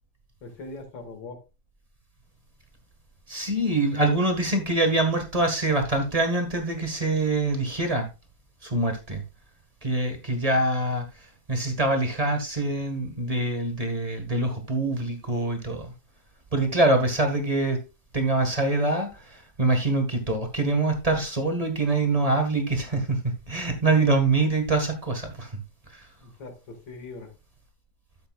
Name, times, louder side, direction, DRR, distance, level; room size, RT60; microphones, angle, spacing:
voice 1, 0.4-1.4 26.2-27.3, left 3 dB, 75° left, 2.7 m, -41 dB
voice 2, 3.3-8.1 8.6-9.2 9.8-11.0 11.5-15.9 16.5-17.8 18.1-25.5 25.9-26.1, right 2 dB, 20° right, 1.5 m, -24 dB
12.0 x 7.8 x 2.4 m
omnidirectional pair, 2.1 m